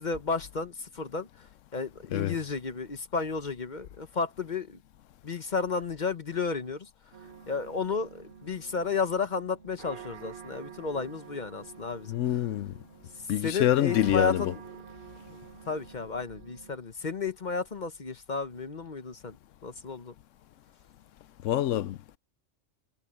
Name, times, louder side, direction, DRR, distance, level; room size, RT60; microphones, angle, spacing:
voice 1, 0.0-1.5 1.7-4.8 5.2-6.9 7.5-12.2 13.4-14.6 15.3-15.4 15.7-19.4 19.6-20.1, left 4 dB, 40° left, 1.1 m, -32 dB
sound 1, 7.1-16.7, right 8 dB, 55° right, 1.2 m, -48 dB
voice 2, 12.1-12.7 13.3-14.5 21.4-22.2, left 12 dB, 85° left, 1.0 m, -26 dB
omnidirectional pair, 1.3 m